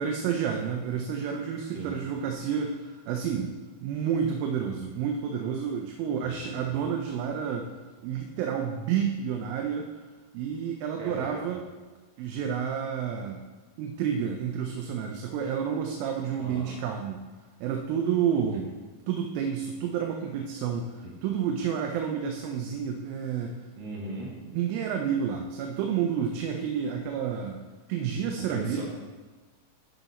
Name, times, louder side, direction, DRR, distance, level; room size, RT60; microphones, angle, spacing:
voice 1, 0.0-7.7 8.0-9.9 10.3-11.6 12.2-13.4 13.8-17.2 17.6-18.7 19.1-23.6 24.5-27.6 27.9-28.8, right 7 dB, 85° right, 3 dB, 2.3 m, -30 dB
voice 2, 1.6-2.0 6.2-6.7 11.0-11.3 16.4-16.8 21.0-21.1 23.8-24.3 28.5-28.8, right 1 dB, 45° right, -3 dB, 1.7 m, -38 dB
11.5 x 4.1 x 4.1 m, 1.3 s
omnidirectional pair, 4.2 m